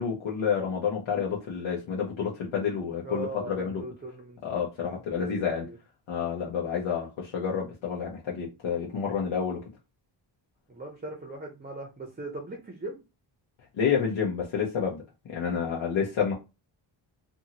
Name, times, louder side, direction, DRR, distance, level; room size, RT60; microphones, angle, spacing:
voice 1, 0.0-3.8 4.4-5.6 6.1-9.6 13.8-15.0 15.3-16.3, left 7 dB, 80° left, -3 dB, 0.9 m, -29 dB
voice 2, 3.0-4.4 4.8-5.8 10.7-13.0, right 2 dB, 20° right, 1 dB, 0.6 m, -39 dB
2.7 x 2.6 x 2.8 m, 0.26 s
wide cardioid pair, 145°, 47 cm